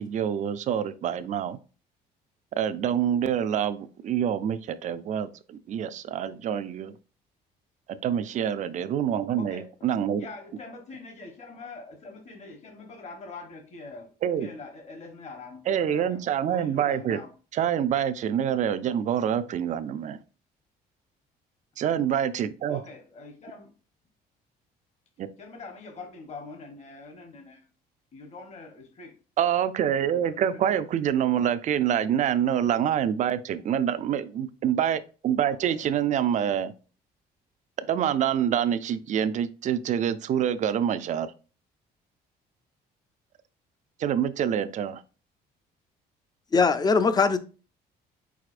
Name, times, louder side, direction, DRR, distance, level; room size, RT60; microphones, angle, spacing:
voice 1, 0.0-1.6 2.6-7.0 7.9-10.3 14.2-14.5 15.6-17.2 17.5-20.2 21.8-22.8 25.2-25.3 29.4-36.7 37.8-41.3 44.0-45.0, right 9 dB, 45° right, 0.4 m, -26 dB
voice 2, 9.3-9.7 10.2-14.1 14.4-15.6 15.9-16.2 16.5-17.3 22.7-23.7 25.4-27.6 28.1-29.1 29.9-30.4 35.4-35.8, left 3 dB, 40° left, 1.1 m, -43 dB
voice 3, 46.5-47.4, left 4 dB, 25° left, 0.4 m, -21 dB
4.8 x 4.1 x 2.5 m
cardioid pair, 110°, 17 cm